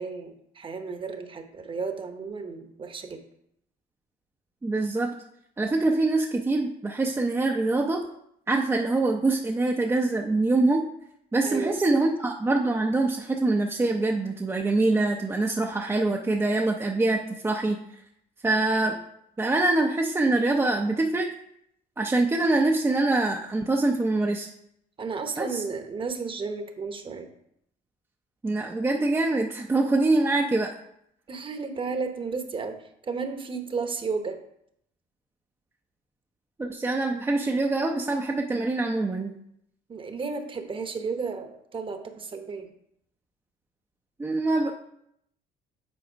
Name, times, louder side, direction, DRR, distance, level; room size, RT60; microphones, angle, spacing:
voice 1, 0.0-3.2 11.4-12.0 25.0-27.3 31.3-34.4 39.9-42.7, right 4 dB, 30° right, 7 dB, 0.9 m, -33 dB
voice 2, 4.6-5.1 5.6-8.0 8.5-10.8 11.3-17.8 18.4-19.0 19.4-21.3 22.0-24.5 25.4-25.6 28.4-30.7 36.6-39.3 44.2-44.7, right 2 dB, 15° right, 1 dB, 0.6 m, -24 dB
7.8 x 4.2 x 5.0 m, 0.74 s
cardioid pair, 110°, 17 cm